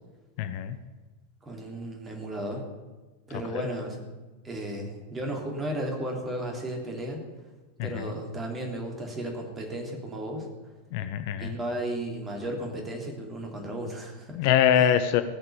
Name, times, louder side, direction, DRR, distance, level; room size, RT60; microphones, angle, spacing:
voice 1, 0.4-0.8 3.5-3.6 7.8-8.0 10.9-11.5 14.4-15.2, left 9 dB, 45° left, 10 dB, 0.7 m, -24 dB
voice 2, 1.4-2.7 3.3-4.0 4.4-7.2 7.8-10.5 11.4-14.4 14.7-15.0, right 1 dB, 20° right, 2 dB, 3.1 m, -34 dB
17.0 x 6.7 x 8.5 m, 1.2 s
figure-of-eight pair, 90°, 0 cm